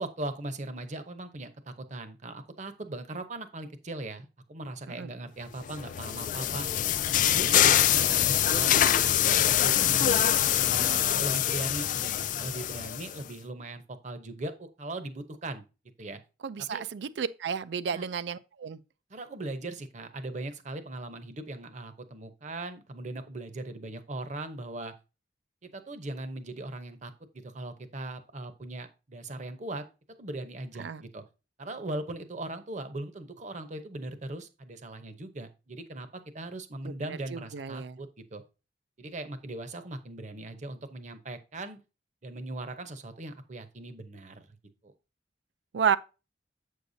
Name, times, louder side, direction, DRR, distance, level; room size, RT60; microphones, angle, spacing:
voice 1, 0.0-6.7 7.1-10.1 10.6-15.6 16.0-16.2 16.6-16.8 17.9-18.0 19.1-24.9 25.6-29.8 30.2-31.2 31.6-38.4 39.0-41.8 42.2-44.5 44.8-44.9, right 2 dB, 45° right, 0.8 m, -39 dB
sound 1, 5.7-13.2, left 11 dB, 45° left, 0.3 m, -24 dB
voice 2, 16.4-18.8 30.8-31.0 36.8-38.0 45.7-46.0, right 7 dB, 85° right, 0.4 m, -31 dB
7.9 x 6.5 x 2.7 m
head